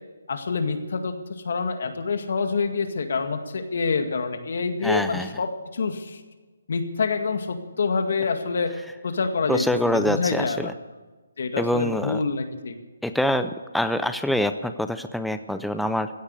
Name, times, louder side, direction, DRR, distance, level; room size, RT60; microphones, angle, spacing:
voice 1, 0.3-6.2 6.7-8.7 9.0-10.7 11.4-12.8, left 4 dB, 55° left, 7 dB, 2.0 m, -27 dB
voice 2, 4.8-5.3 9.5-10.7 11.6-12.2 13.0-16.1, left 1 dB, ahead, 9 dB, 0.4 m, -25 dB
16.0 x 9.8 x 8.3 m, 1.3 s
hypercardioid pair, 170°, 0 cm